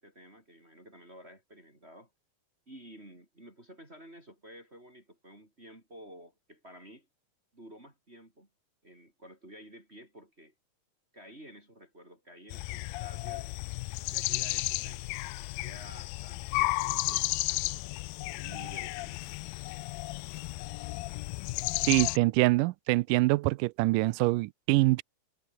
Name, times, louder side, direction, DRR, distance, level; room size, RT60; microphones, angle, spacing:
voice 1, 0.0-2.1 2.7-7.1 7.5-8.5 8.8-10.5 11.1-13.6 14.1-17.8 18.3-19.6, equal, 15° right, 4.4 m, -52 dB
sound 1, 12.5-22.2, left 21 dB, 80° left, 2.3 m, -33 dB
voice 2, 21.9-25.0, right 21 dB, 80° right, 2.0 m, -25 dB
omnidirectional pair, 4.2 m